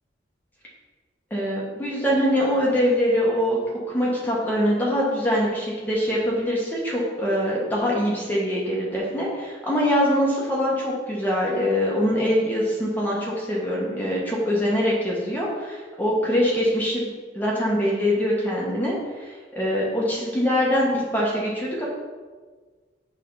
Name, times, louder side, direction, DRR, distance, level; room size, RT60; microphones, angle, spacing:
voice 1, 1.3-3.6 3.9-17.1 17.3-18.9 19.2-21.8, equal, 10° left, -5 dB, 1.2 m, -23 dB
6.6 x 3.6 x 5.4 m, 1.4 s
head